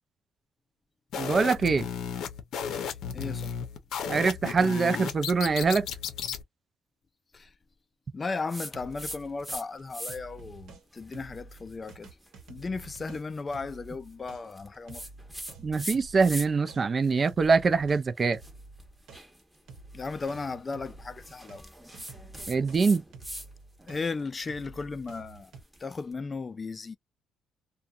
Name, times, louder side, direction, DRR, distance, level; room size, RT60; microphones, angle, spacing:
sound 1, 1.1-6.4, left 7 dB, 80° left, 0.6 m, -34 dB
voice 1, 1.1-1.9 4.1-5.9 15.6-18.4 22.5-23.0, right 4 dB, 40° right, 0.4 m, -24 dB
voice 2, 3.1-3.6 7.3-7.5 8.1-12.1 12.5-15.0 19.9-21.7 23.9-25.5 25.8-27.0, left 4 dB, 30° left, 0.3 m, -35 dB
sound 2, 8.3-10.8 11.1-21.6 21.9-25.6, right 4 dB, 80° right, 0.9 m, -49 dB
sound 3, 8.5-9.6 9.9-10.4 10.9-16.7 17.0-23.5 23.8-26.0, right 1 dB, 5° right, 0.8 m, -43 dB
2.6 x 2.2 x 2.3 m
cardioid pair, 90°, 0 cm